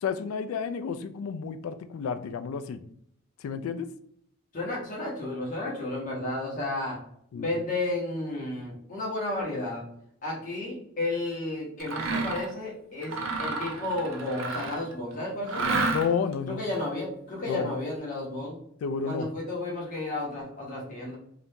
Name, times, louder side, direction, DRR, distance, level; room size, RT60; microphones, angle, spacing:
voice 1, 0.0-2.8 3.4-3.9 7.3-7.5 15.9-16.6 17.5-17.7 18.8-19.3, left 6 dB, 75° left, 11 dB, 0.3 m, -31 dB
voice 2, 4.5-7.0 7.3-9.9 10.2-15.7 16.5-18.6 19.0-21.2, left 2 dB, 40° left, -3 dB, 1.0 m, -32 dB
Mechanisms, 11.8-12.5 13.0-14.9 15.5-16.3, right 3 dB, 65° right, 0.6 m, -30 dB
2.8 x 2.5 x 3.4 m, 0.69 s
head